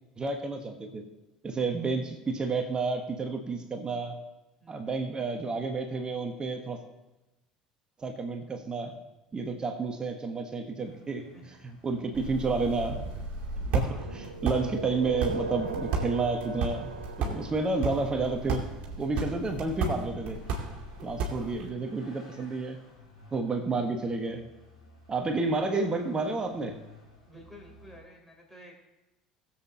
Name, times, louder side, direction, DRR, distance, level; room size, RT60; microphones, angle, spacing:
voice 1, 0.2-1.0 1.4-4.2 4.7-6.8 8.0-8.9 9.3-11.3 11.6-13.0 13.7-16.9 17.2-18.6 19.0-20.5 21.0-22.8 23.3-24.5 25.1-26.8, right 3 dB, 20° right, 5 dB, 1.3 m, -30 dB
voice 2, 4.6-5.0 11.3-11.6 13.7-14.1 21.3-21.6 27.2-28.7, equal, 5° left, -1 dB, 3.6 m, -51 dB
Vehicle, 10.8-28.0, left 2 dB, 85° left, 3.8 m, -55 dB
sound 1, 12.1-21.7, right 3 dB, 45° right, 2.5 m, -34 dB
sound 2, 13.7-18.7, right 4 dB, 80° right, 0.9 m, -38 dB
21.0 x 7.7 x 2.9 m, 1.0 s
figure-of-eight pair, 65°, 4 cm